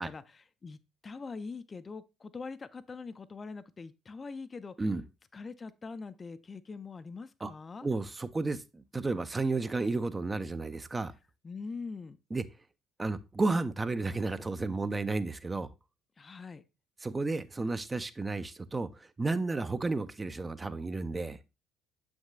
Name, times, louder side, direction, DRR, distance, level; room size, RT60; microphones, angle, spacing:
voice 1, 0.0-4.7 5.3-7.9 11.4-12.2 16.2-16.6, left 4 dB, 30° left, 0.4 m, -43 dB
voice 2, 7.8-11.1 12.3-12.4 13.0-15.7 17.0-21.4, right 3 dB, 25° right, 0.5 m, -32 dB
7.2 x 6.1 x 2.3 m
figure-of-eight pair, 50°, 0 cm